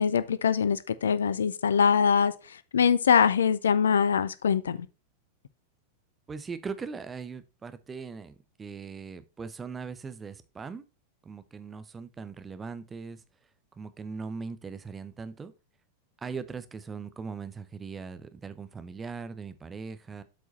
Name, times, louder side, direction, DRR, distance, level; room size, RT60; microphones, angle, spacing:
voice 1, 0.0-4.9, left 7 dB, 65° left, 0.5 m, -23 dB
voice 2, 6.3-10.8 11.2-13.2 13.8-15.5 16.2-20.2, right 5 dB, 15° right, 0.7 m, -40 dB
8.0 x 4.7 x 4.0 m
figure-of-eight pair, 90°, 0 cm